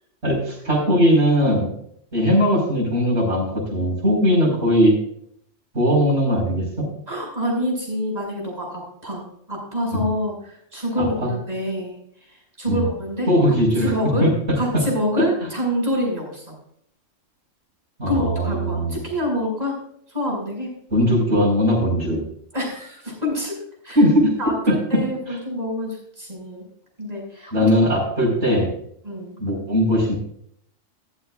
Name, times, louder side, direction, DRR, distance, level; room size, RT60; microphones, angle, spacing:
voice 1, 0.2-1.7 2.1-5.0 5.7-6.9 9.9-10.0 11.0-11.3 12.7-12.9 13.3-13.9 14.2-14.8 15.2-15.3 18.0-19.0 20.9-22.2 24.0-24.3 24.7-24.8 25.3-25.4 27.5-28.7 29.4-30.2, equal, 60° right, -2 dB, 5.4 m, -19 dB
voice 2, 7.1-12.0 12.3-13.3 13.8-14.3 14.5-16.5 18.1-19.8 20.1-20.7 22.5-23.6 23.8-24.0 24.4-26.6 27.0-27.7 29.0-29.4, left 1 dB, 30° right, -2 dB, 6.0 m, -27 dB
14.5 x 13.0 x 2.5 m, 0.66 s
omnidirectional pair, 1.3 m